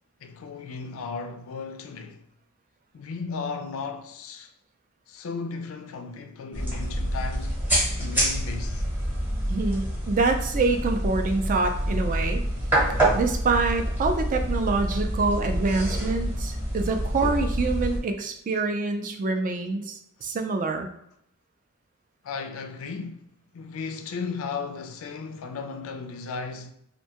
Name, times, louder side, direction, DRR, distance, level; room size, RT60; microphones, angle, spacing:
voice 1, 0.2-2.2 2.9-4.5 5.1-7.6 8.0-8.8 22.2-23.3 23.5-26.7, left 4 dB, 75° left, 0.4 m, -35 dB
sound 1, 6.5-18.0, right 1 dB, 10° right, 0.8 m, -27 dB
voice 2, 9.5-12.4 13.1-20.9, right 3 dB, 40° right, 0.4 m, -26 dB
2.6 x 2.2 x 2.8 m
head